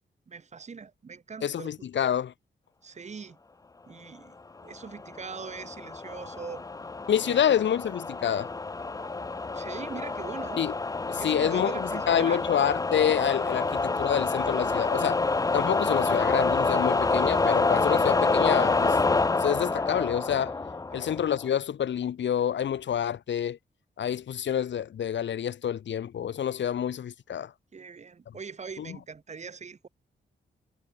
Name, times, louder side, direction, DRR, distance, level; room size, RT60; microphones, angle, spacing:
voice 1, 0.3-1.7 2.8-3.4 3.9-4.3 4.6-6.6 7.2-7.6 9.5-10.7 11.2-12.5 13.6-13.7 20.9-21.1 27.7-29.9, right 5 dB, 40° right, 6.4 m, -41 dB
voice 2, 1.4-2.3 7.1-8.5 10.6-10.7 11.1-15.2 15.5-19.0 19.4-20.6 20.9-23.6 24.0-27.5 28.8-29.0, left 9 dB, 75° left, 5.5 m, -28 dB
sound 1, 5.0-21.5, left 3 dB, 20° left, 0.9 m, -27 dB
wide cardioid pair, 150°, 19 cm